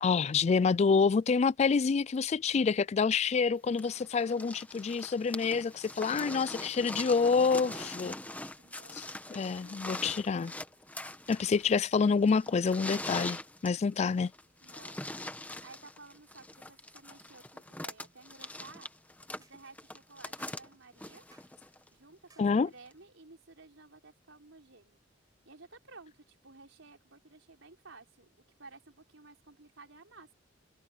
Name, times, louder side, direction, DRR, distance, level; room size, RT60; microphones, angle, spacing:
voice 1, 0.0-8.1 9.0-9.1 9.3-10.5 11.3-14.3 22.4-22.7, left 5 dB, 35° left, 0.3 m, -27 dB
sound 1, 3.8-21.9 22.9-23.0, left 1 dB, 10° left, 1.2 m, -42 dB
voice 2, 6.1-10.4 14.6-15.0 15.6-18.9 19.4-21.3 21.9-25.0 25.4-30.3, right 3 dB, 85° right, 4.3 m, -55 dB
sound 2, 18.4-18.6 19.4-19.6 20.4-20.6 21.3-21.5 22.3-22.5, right 4 dB, 20° right, 7.2 m, -62 dB
head